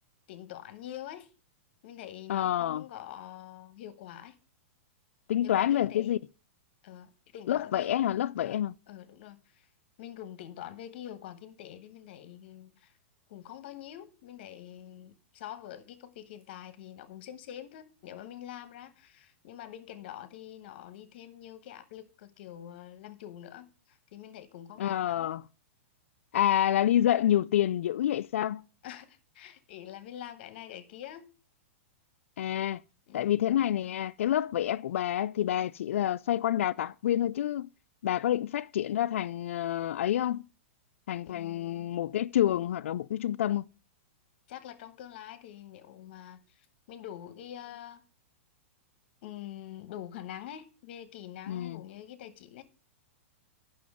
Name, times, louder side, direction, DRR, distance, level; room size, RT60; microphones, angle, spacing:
voice 1, 0.3-1.3 1.8-4.4 5.4-6.2 6.8-8.0 8.4-8.6 8.9-9.7 10.0-13.0 13.3-25.4 28.8-31.3 33.1-33.4 41.2-41.9 44.5-48.0 49.2-52.6, left 11 dB, 50° left, 1.1 m, -45 dB
voice 2, 2.3-2.8 5.3-6.2 7.5-8.7 24.8-25.4 26.3-28.6 32.4-32.8 33.1-37.7 38.0-40.5 41.1-43.6 51.5-51.8, left 11 dB, 70° left, 0.3 m, -28 dB
9.4 x 6.1 x 4.9 m
supercardioid pair, 165°, 7 cm